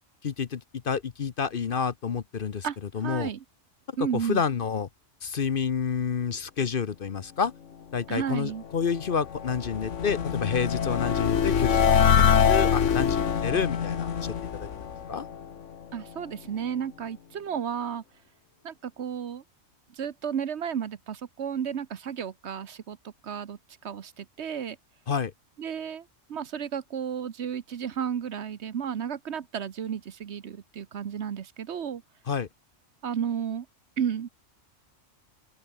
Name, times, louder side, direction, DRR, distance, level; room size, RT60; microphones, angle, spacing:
voice 1, 0.2-2.7 2.9-3.3 4.3-4.9 5.2-7.5 7.9-15.2 25.1-25.3 32.3-32.5, left 6 dB, 50° left, 1.0 m, -29 dB
voice 2, 2.6-3.4 4.0-4.4 8.1-8.6 15.9-18.0 18.6-19.4 19.9-23.0 23.2-24.8 25.6-32.0 33.0-33.7 34.0-34.3, right 8 dB, 60° right, 1.2 m, -33 dB
sound 1, 8.7-15.8, left 7 dB, 70° left, 1.5 m, -24 dB
open air
omnidirectional pair, 1.3 m